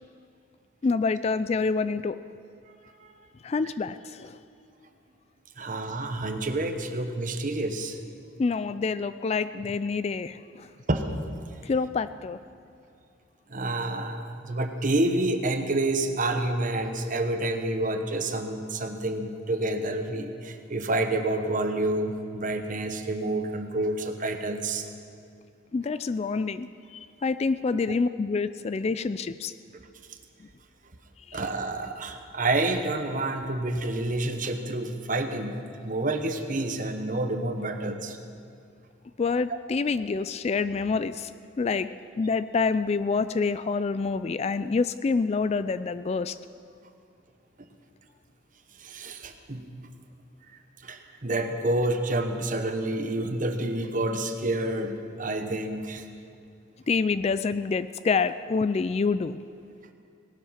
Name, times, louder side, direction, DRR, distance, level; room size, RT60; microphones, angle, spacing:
voice 1, 0.8-2.2 3.4-4.4 8.4-10.7 11.6-12.4 25.7-29.5 30.4-30.5 31.3-31.4 39.2-41.3 41.6-41.9 42.2-46.4 56.9-59.4, left 4 dB, 35° left, 14 dB, 0.3 m, -27 dB
voice 2, 5.6-8.0 10.9-11.2 13.5-24.9 31.3-38.2 39.5-39.6 48.8-49.6 50.8-56.1, right 2 dB, 40° right, 6 dB, 1.1 m, -28 dB
18.5 x 12.5 x 5.8 m, 2.5 s
head